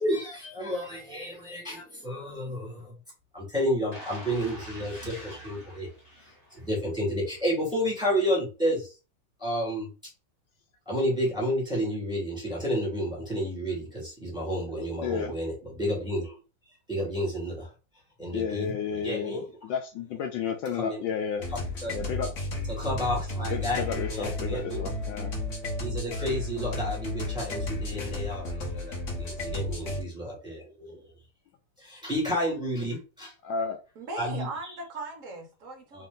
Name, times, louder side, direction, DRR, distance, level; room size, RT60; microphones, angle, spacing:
voice 1, 0.0-2.9 3.3-5.9 6.5-8.9 9.4-9.9 10.8-16.4 16.9-17.7 18.2-19.5 20.7-21.1 21.5-22.0 22.7-24.8 25.8-31.0 31.8-33.3 34.2-34.8 35.9-36.1, equal, ahead, 1.4 m, -31 dB
sound 1, 3.9-6.9 7.3-7.4, equal, 25° left, 1.6 m, -44 dB
voice 2, 15.0-15.3 18.3-21.4 21.9-22.3 23.5-25.3 29.4-29.5 33.4-33.8, left 7 dB, 75° left, 1.1 m, -32 dB
sound 2, 21.4-30.0, left 1 dB, 50° left, 1.0 m, -33 dB
voice 3, 34.0-36.1, right 3 dB, 70° right, 0.7 m, -39 dB
3.3 x 2.8 x 3.8 m
omnidirectional pair, 2.3 m